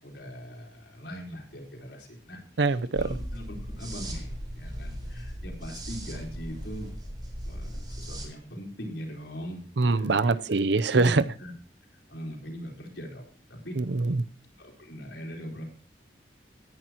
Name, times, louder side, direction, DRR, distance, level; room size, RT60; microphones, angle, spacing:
voice 1, 0.0-2.4 2.7-3.4 3.8-4.3 4.5-6.9 7.5-10.3 10.9-11.1 11.4-11.5 12.1-13.2 13.5-13.7 14.6-15.6, equal, 75° left, 0 dB, 4.3 m, -41 dB
voice 2, 2.6-3.1 9.8-11.3 13.8-14.3, right 3 dB, 75° right, 15 dB, 0.7 m, -24 dB
sound 1, 2.9-8.2, equal, 25° right, 4.2 m, -37 dB
18.0 x 10.5 x 2.9 m, 0.42 s
head